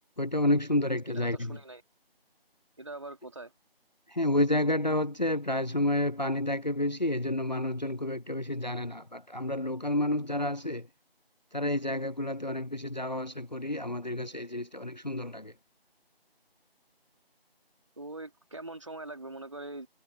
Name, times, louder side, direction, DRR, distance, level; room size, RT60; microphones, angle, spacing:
voice 1, 0.2-1.6 4.1-10.8 11.5-15.5, left 1 dB, 45° left, 0.5 m, -30 dB
voice 2, 1.1-1.8 2.8-3.5 18.0-19.9, right 2 dB, 30° right, 3.0 m, -42 dB
figure-of-eight pair, 175°, 30 cm